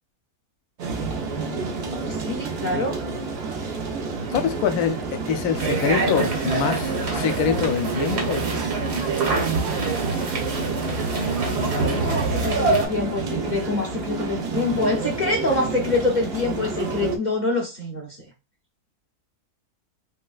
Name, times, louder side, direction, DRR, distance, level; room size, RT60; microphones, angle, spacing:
sound 1, 0.8-17.2, right 4 dB, 60° right, 0.7 m, -30 dB
voice 1, 1.4-1.7 2.0-3.0 11.5-18.3, left 2 dB, 50° left, 0.5 m, -26 dB
voice 2, 4.3-5.0 5.3-8.4, left 7 dB, 75° left, 1.0 m, -24 dB
sound 2, 5.5-12.9, right 3 dB, 75° right, 1.6 m, -25 dB
3.3 x 3.0 x 2.3 m
omnidirectional pair, 1.7 m